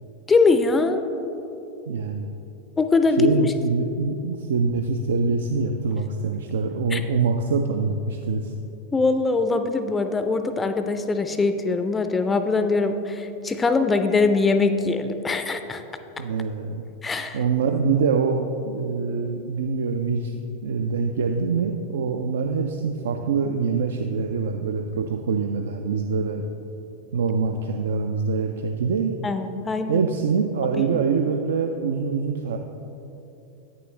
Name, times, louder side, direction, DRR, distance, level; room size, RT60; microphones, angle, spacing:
voice 1, 0.3-1.0 2.8-3.5 6.9-7.0 8.9-15.8 17.0-17.4 29.2-30.0 30.9-31.0, left 4 dB, 15° left, 8 dB, 0.4 m, -22 dB
voice 2, 1.9-2.3 3.2-8.5 16.2-16.8 17.3-26.5 27.1-29.1 29.9-32.6, right 5 dB, 60° right, 5 dB, 0.3 m, -24 dB
8.8 x 6.7 x 3.1 m, 2.8 s
figure-of-eight pair, 90°, 0 cm